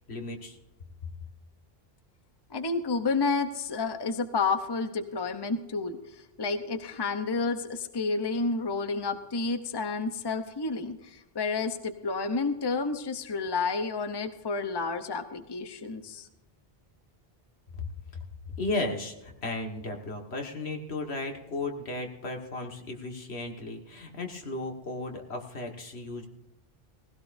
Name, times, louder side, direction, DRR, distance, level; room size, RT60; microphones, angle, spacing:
voice 1, 0.1-0.6 17.8-17.9 18.5-26.3, left 2 dB, 85° left, 3 dB, 2.0 m, -35 dB
voice 2, 2.5-16.3, left 4 dB, 25° left, 9 dB, 0.8 m, -30 dB
19.0 x 16.0 x 2.6 m, 0.94 s
omnidirectional pair, 1.1 m